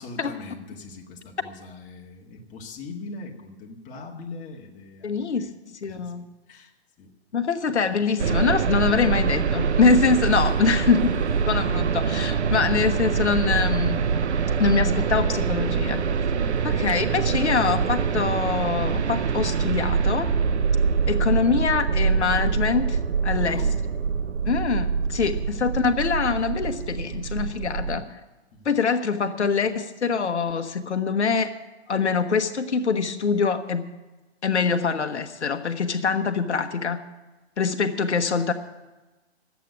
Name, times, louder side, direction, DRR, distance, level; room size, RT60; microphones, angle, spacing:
voice 1, 0.0-5.5 5.8-6.1 6.5-6.7 7.0-7.1 10.2-11.5 16.4-16.8 23.4-23.8 25.4-25.6 27.8-28.0 28.5-28.7, left 2 dB, 25° left, 0 dB, 1.9 m, -41 dB
voice 2, 5.0-6.2 7.3-11.0 11.5-14.0 14.6-16.0 16.6-20.3 21.1-23.6 24.4-28.1 28.6-31.5 31.9-33.9 34.4-37.0 37.6-38.5, left 5 dB, 85° left, 8 dB, 1.1 m, -24 dB
sound 1, 8.2-28.0, right 6 dB, 85° right, 0.8 m, -24 dB
12.5 x 8.3 x 9.4 m, 1.1 s
hypercardioid pair, 130°, 33 cm